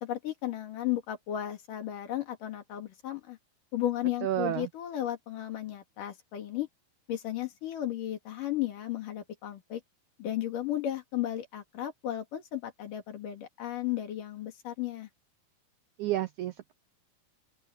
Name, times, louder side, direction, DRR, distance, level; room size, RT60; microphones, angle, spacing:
voice 1, 0.0-3.4 3.7-6.7 7.1-9.8 10.2-15.1, left 12 dB, 60° left, 3.6 m, -34 dB
voice 2, 4.2-4.7 16.0-16.7, right 13 dB, 90° right, 1.7 m, -30 dB
open air
omnidirectional pair, 4.4 m